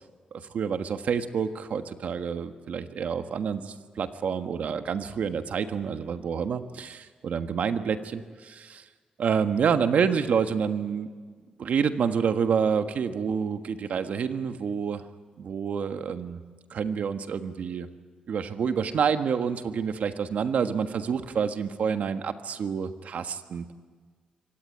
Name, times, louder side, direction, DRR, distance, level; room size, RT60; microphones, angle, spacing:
voice 1, 0.3-8.8 9.2-11.1 11.6-15.1 15.4-16.4 16.7-17.9 18.3-23.7, right 6 dB, 75° right, 8 dB, 1.5 m, -28 dB
24.5 x 18.0 x 9.2 m, 1.5 s
cardioid pair, 75°, 3 cm